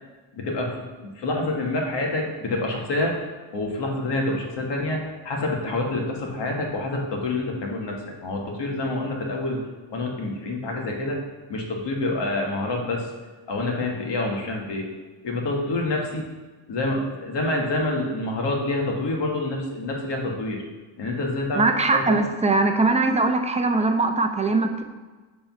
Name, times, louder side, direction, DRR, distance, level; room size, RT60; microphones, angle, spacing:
voice 1, 0.3-3.2 3.5-8.0 8.2-9.6 9.9-11.2 11.5-13.1 13.5-14.9 15.2-16.3 16.7-20.6 21.0-21.7 21.9-22.2, left 2 dB, 60° left, 0 dB, 1.7 m, -27 dB
voice 2, 21.5-24.8, right 3 dB, 15° right, 5 dB, 0.6 m, -21 dB
6.8 x 3.8 x 5.9 m, 1.3 s
cardioid pair, 100°, 46 cm